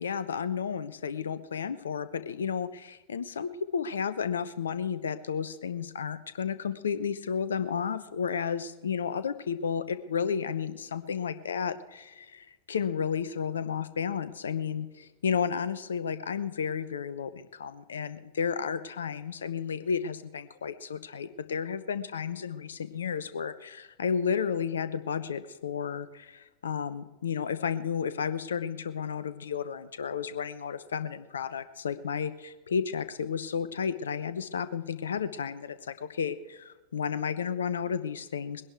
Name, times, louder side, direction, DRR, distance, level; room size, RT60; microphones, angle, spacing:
voice 1, 0.0-38.6, left 7 dB, 65° left, 14 dB, 0.8 m, -32 dB
20.5 x 11.0 x 4.5 m, 1.1 s
figure-of-eight pair, 90°, 0 cm